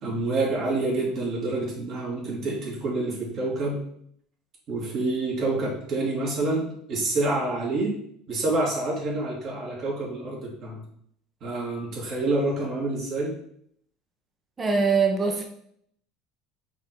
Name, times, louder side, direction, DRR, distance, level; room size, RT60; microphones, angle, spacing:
voice 1, 0.0-3.8 4.7-8.0 8.3-10.8 11.4-13.3, right 2 dB, 50° right, -4 dB, 2.8 m, -27 dB
voice 2, 14.6-15.5, right 4 dB, 20° right, 3 dB, 1.1 m, -22 dB
5.9 x 4.6 x 4.7 m, 0.68 s
supercardioid pair, 125°, 0 cm